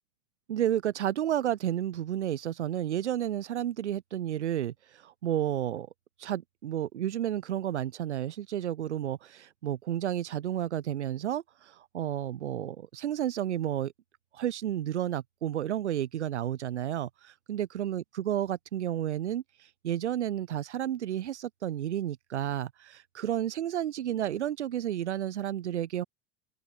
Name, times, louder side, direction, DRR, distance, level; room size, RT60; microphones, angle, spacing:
voice 1, 0.5-5.9 6.2-13.9 14.3-26.0, right 11 dB, 85° right, 5.2 m, -31 dB
hypercardioid pair, 90°, 34 cm